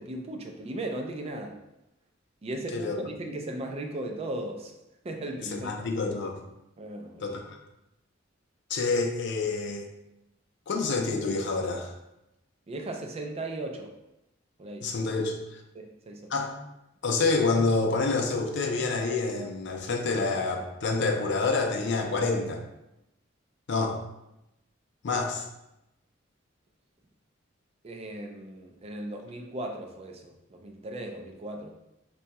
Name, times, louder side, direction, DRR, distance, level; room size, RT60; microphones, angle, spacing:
voice 1, 0.0-1.6 2.4-4.7 5.0-5.9 6.8-7.4 12.7-13.9 14.6-14.9 15.7-16.3 27.8-31.7, right 1 dB, 30° right, 2 dB, 0.4 m, -37 dB
voice 2, 5.5-6.4 7.2-7.6 8.7-9.8 10.7-11.9 14.8-15.4 16.3-16.6 17.0-22.6 23.7-24.0 25.0-25.5, left 3 dB, 60° left, 3 dB, 0.5 m, -27 dB
2.7 x 2.3 x 4.0 m, 0.90 s
head